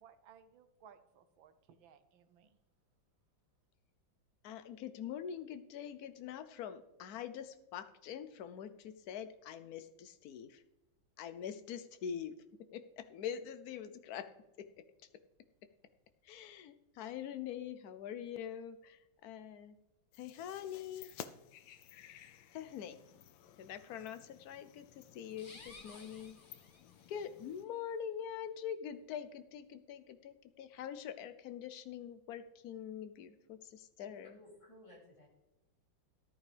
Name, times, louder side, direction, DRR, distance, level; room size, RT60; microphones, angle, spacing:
voice 1, 0.0-2.6, right 8 dB, 80° right, 11 dB, 1.5 m, -61 dB
voice 2, 4.4-10.6 11.2-14.3 14.6-14.7 16.2-19.8 20.1-21.1 22.5-23.0 23.6-26.4 27.1-34.4, left 9 dB, 60° left, 11 dB, 1.1 m, -44 dB
sound 1, 20.1-27.7, left 10 dB, 80° left, 1.4 m, -55 dB
sound 2, 25.3-27.3, left 3 dB, 30° left, 1.2 m, -56 dB
voice 3, 34.0-35.3, left 1 dB, 15° left, -4 dB, 3.2 m, -58 dB
13.5 x 11.0 x 3.4 m, 0.95 s
omnidirectional pair, 2.1 m